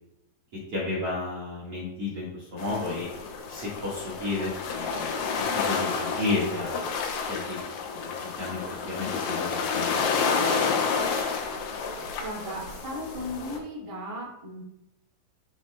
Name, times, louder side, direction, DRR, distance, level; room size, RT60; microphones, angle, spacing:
voice 1, 0.7-3.1 3.5-5.2 5.6-7.0 7.3-7.6 8.0-8.1 8.4-10.5, left 3 dB, 60° right, -7 dB, 1.5 m, -32 dB
sound 1, 2.6-13.6, left 5 dB, 80° left, 2.8 m, -30 dB
voice 2, 12.2-14.6, left 1 dB, 30° right, -6 dB, 0.6 m, -36 dB
12.5 x 4.4 x 2.2 m, 0.86 s
omnidirectional pair, 5.1 m